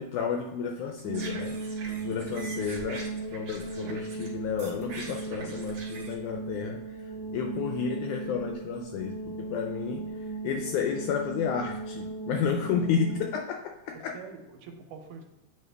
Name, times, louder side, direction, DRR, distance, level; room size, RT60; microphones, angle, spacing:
voice 1, 0.0-1.5 2.0-6.8 7.3-10.1 10.4-14.1, left 7 dB, 80° left, 3 dB, 1.8 m, -31 dB
sound 1, 0.9-4.3 4.6-6.1, right 3 dB, 55° right, 1.6 m, -43 dB
sound 2, 1.0-13.4, right 3 dB, 25° right, 1.6 m, -37 dB
voice 2, 1.8-2.3 7.0-7.4 12.5-13.0 13.9-15.2, right 5 dB, 80° right, 4 dB, 2.2 m, -47 dB
8.3 x 3.4 x 3.3 m, 0.94 s
omnidirectional pair, 3.9 m